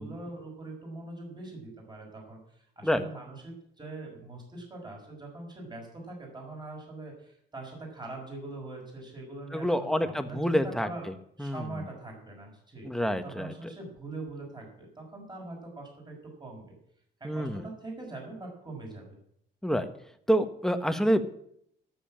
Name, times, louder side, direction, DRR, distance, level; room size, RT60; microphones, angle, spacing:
voice 1, 0.0-11.1 11.4-12.9 13.2-16.8 17.2-19.2, right 2 dB, 20° right, 0 dB, 5.8 m, -42 dB
voice 2, 9.5-11.1 11.4-11.6 12.8-13.5 17.2-17.6 19.6-19.9 20.3-21.2, equal, ahead, 8 dB, 1.3 m, -27 dB
13.0 x 7.2 x 8.7 m, 0.70 s
cardioid pair, 90°, 20 cm